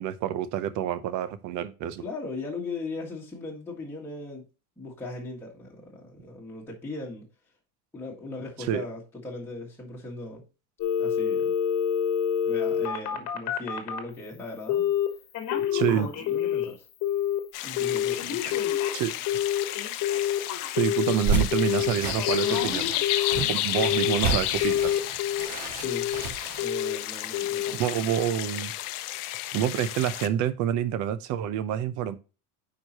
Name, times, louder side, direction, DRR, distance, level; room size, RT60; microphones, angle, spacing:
voice 1, 0.0-2.0 8.6-8.8 15.7-16.1 18.9-19.2 20.7-22.9 23.3-25.0 27.7-28.7 29.5-32.2, right 10 dB, 40° right, 0.7 m, -27 dB
voice 2, 2.0-4.4 4.8-7.2 7.9-10.4 11.0-11.5 12.4-14.9 15.7-16.9 17.6-18.6 25.4-26.1 26.6-28.0, left 2 dB, 5° left, 1.6 m, -38 dB
Telephone, 10.8-14.1 14.7-15.1 15.3-16.7 17.0-17.4 17.8-21.1 21.5-21.9 22.2-24.2 24.6-25.5 25.8-26.2 26.6-27.0 27.3-27.7 28.1-28.2, left 10 dB, 40° left, 1.4 m, -27 dB
sound 1, 17.5-30.3, left 15 dB, 75° left, 0.9 m, -32 dB
sound 2, 21.0-26.6, right 4 dB, 55° right, 3.2 m, -31 dB
9.4 x 4.8 x 2.9 m
supercardioid pair, 145°, 45 cm